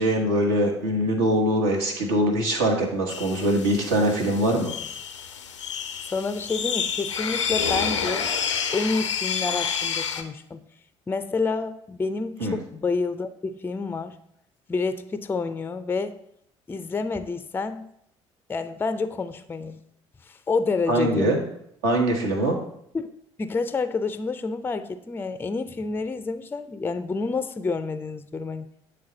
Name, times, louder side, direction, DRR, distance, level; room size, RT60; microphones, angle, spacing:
voice 1, 0.0-4.7 12.4-12.6 20.9-21.4 21.8-22.6, right 1 dB, 65° right, 1 dB, 1.2 m, -23 dB
sound 1, 3.1-10.2, left 7 dB, 80° left, 0.4 m, -29 dB
voice 2, 6.1-8.3 8.7-10.6 11.1-14.1 14.7-16.1 16.7-17.9 18.5-19.8 20.3-21.4 22.9-23.1 23.4-28.7, left 4 dB, 15° left, 11 dB, 0.4 m, -28 dB
8.7 x 3.4 x 3.8 m, 0.73 s
figure-of-eight pair, 50°, 15 cm